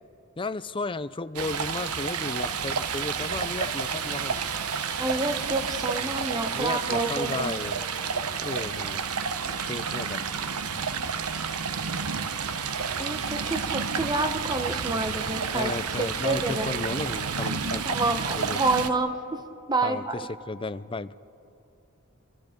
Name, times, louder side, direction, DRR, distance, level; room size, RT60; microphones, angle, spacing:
voice 1, 0.4-4.5 6.5-7.8 8.4-9.0 9.5-10.5 15.5-17.9 18.3-18.6 19.8-21.1, left 3 dB, 25° left, 14 dB, 0.5 m, -34 dB
Stream, 1.4-18.9, right 6 dB, 85° right, 1.0 m, -30 dB
voice 2, 5.0-7.5 13.0-15.7 16.0-16.7 17.8-19.1 19.7-20.2, right 2 dB, 20° right, 7 dB, 1.2 m, -28 dB
29.5 x 25.0 x 5.2 m, 2.8 s
head